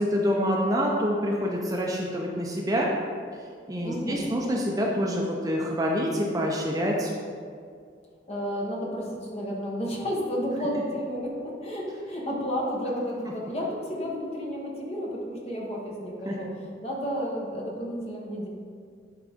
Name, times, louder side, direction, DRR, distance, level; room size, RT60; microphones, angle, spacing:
voice 1, 0.0-2.9 3.7-7.1 16.3-16.4, equal, 20° right, -2 dB, 0.6 m, -26 dB
voice 2, 3.8-4.3 8.3-16.5 16.8-18.5, equal, 35° left, -3 dB, 1.2 m, -31 dB
10.5 x 3.9 x 3.6 m, 2.2 s
head